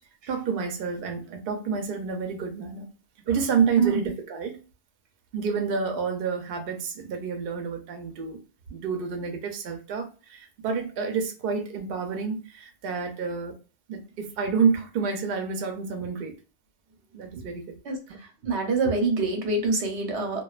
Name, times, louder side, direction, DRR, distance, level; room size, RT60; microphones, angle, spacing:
voice 1, 0.3-2.9 3.3-4.6 5.3-8.4 8.7-13.5 13.9-16.3 17.1-17.8 18.1-18.2, right 5 dB, 65° right, 0.7 m, -29 dB
voice 2, 17.8-20.4, right 3 dB, 90° right, 1.0 m, -26 dB
2.4 x 2.2 x 2.3 m
omnidirectional pair, 1.1 m